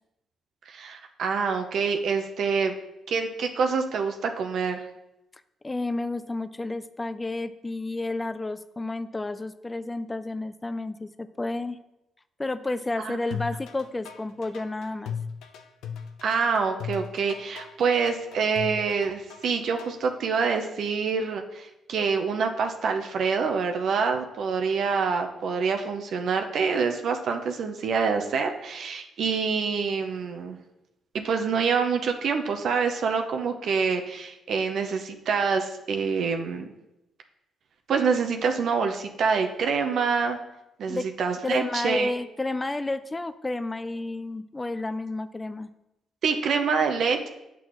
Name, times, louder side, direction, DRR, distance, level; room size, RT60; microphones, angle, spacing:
voice 1, 0.7-2.7 3.1-4.8 13.0-13.2 16.2-30.6 31.1-36.7 37.9-40.4 40.8-42.1 46.2-47.3, right 5 dB, 65° right, 5 dB, 0.7 m, -26 dB
voice 2, 5.6-11.8 12.4-15.1 40.9-41.1 41.4-45.7, left 2 dB, 20° left, 13 dB, 0.4 m, -31 dB
sound 1, 13.3-20.1, left 7 dB, 85° left, 0.6 m, -37 dB
8.3 x 6.1 x 3.1 m, 0.90 s
cardioid pair, 90°, 0 cm